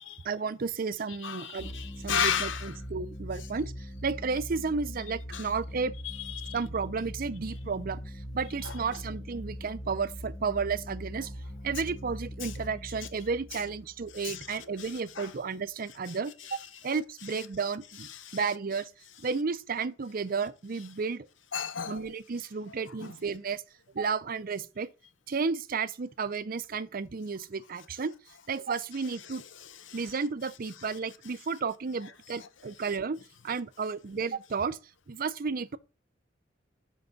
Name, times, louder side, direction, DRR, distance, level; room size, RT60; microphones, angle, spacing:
voice 1, 0.2-1.7 2.0-5.9 6.5-11.3 11.6-18.9 19.2-21.3 21.9-23.6 23.9-24.9 25.3-28.1 28.5-29.4 29.9-33.2 33.4-34.8 35.1-35.8, right 5 dB, 50° right, 0.5 m, -32 dB
voice 2, 1.2-2.7 5.3-5.4 6.0-6.6 8.6-8.7 12.4-12.5 14.2-14.6 15.2-15.3 18.1-18.4 21.5-22.0 29.6-30.0, left 7 dB, 80° left, 0.9 m, -33 dB
sound 1, 1.6-14.9, equal, 30° left, 3.9 m, -41 dB
7.8 x 5.4 x 3.9 m
head